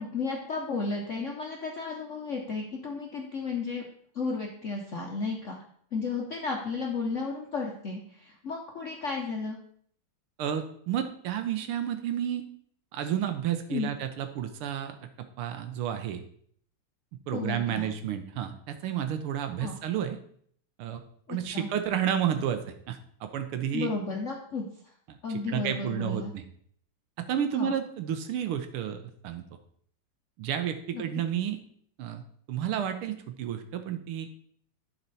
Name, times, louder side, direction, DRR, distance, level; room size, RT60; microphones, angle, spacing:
voice 1, 0.0-3.8 4.1-5.6 5.9-9.6 13.7-13.9 17.3-17.9 19.6-19.7 21.3-21.7 23.7-24.9 25.2-26.3 27.6-27.7 30.9-31.0, left 4 dB, 60° left, 0 dB, 0.7 m, -33 dB
voice 2, 10.4-12.4 12.9-16.2 17.3-20.2 20.8-21.0 21.3-23.9 25.1-25.2 25.5-26.4 27.2-29.4 30.4-31.6 32.0-32.2 32.5-34.3, right 9 dB, 80° right, 8 dB, 1.6 m, -31 dB
11.0 x 4.4 x 4.0 m, 0.62 s
omnidirectional pair, 2.4 m